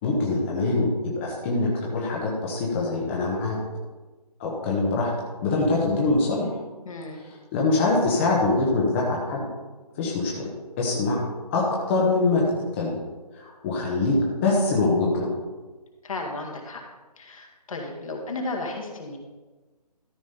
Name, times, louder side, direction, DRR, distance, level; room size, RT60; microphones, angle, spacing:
voice 1, 0.0-3.6 4.4-5.1 5.4-6.5 7.5-9.5 10.0-10.5 10.8-11.3 11.5-12.9 13.3-15.3, left 3 dB, 20° left, -4 dB, 1.2 m, -24 dB
voice 2, 6.8-7.2 16.0-16.8 17.2-19.2, left 2 dB, 55° left, 1 dB, 2.0 m, -34 dB
13.0 x 5.1 x 5.4 m, 1.3 s
figure-of-eight pair, 160°, 21 cm